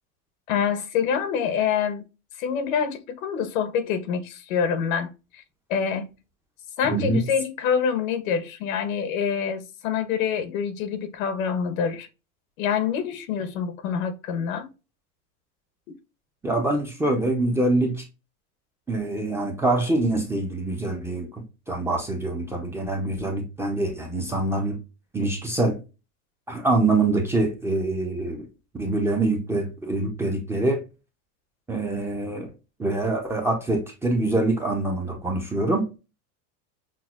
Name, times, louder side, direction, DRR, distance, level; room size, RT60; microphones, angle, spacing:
voice 1, 0.5-2.0 2.4-5.4 5.7-6.1 6.8-12.1 12.6-14.7, left 7 dB, 90° left, 1.0 m, -26 dB
voice 2, 6.8-7.2 16.4-18.0 18.9-21.3 21.7-24.8 25.1-25.8 26.5-28.5 28.8-30.8 31.7-32.5 32.8-35.9, right 2 dB, 5° right, 0.4 m, -25 dB
5.9 x 2.2 x 2.3 m
supercardioid pair, 150°, 40 cm